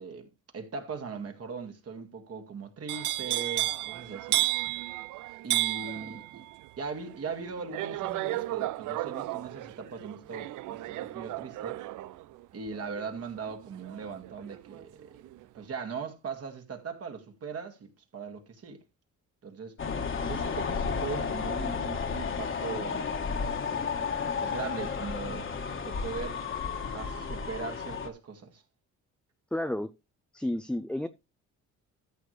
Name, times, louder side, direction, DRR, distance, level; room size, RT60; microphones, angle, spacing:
voice 1, 0.0-4.5 5.4-6.5 6.8-11.8 12.5-15.1 15.5-18.8 19.4-19.7 20.3-23.1 23.4-23.9 24.4-25.5 25.8-26.4 26.9-28.6, right 5 dB, 50° right, 2.1 m, -40 dB
sound 1, 2.9-14.8 15.2-15.6, right 17 dB, 80° right, 0.6 m, -33 dB
sound 2, 19.8-28.1, left 5 dB, 40° left, 1.5 m, -32 dB
voice 2, 29.5-29.9 30.3-31.1, left 1 dB, 5° left, 0.5 m, -31 dB
14.0 x 6.4 x 3.3 m
cardioid pair, 90°, 30 cm